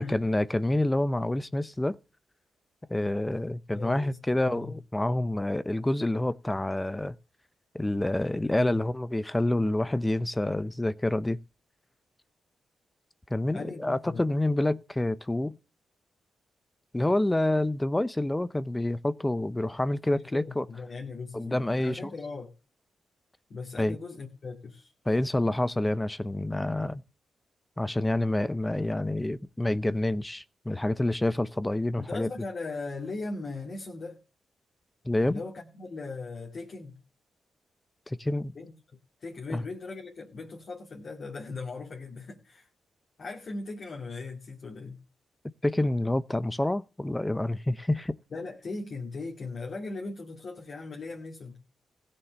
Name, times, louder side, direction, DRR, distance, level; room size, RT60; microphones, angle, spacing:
voice 1, 0.0-2.0 2.9-7.1 7.7-11.4 13.3-15.6 16.9-20.7 21.3-22.1 23.8-24.0 25.1-27.0 27.8-32.3 35.0-35.4 38.1-38.6 39.5-39.6 45.6-48.2, left 1 dB, 15° left, 0.6 m, -28 dB
voice 2, 3.7-4.7 13.5-14.3 20.1-22.5 23.5-24.9 32.0-34.2 35.3-37.0 38.6-38.7 39.2-42.7 43.2-45.0 48.3-51.6, left 3 dB, 50° left, 2.3 m, -39 dB
16.0 x 7.3 x 6.4 m
cardioid pair, 80°, 0 cm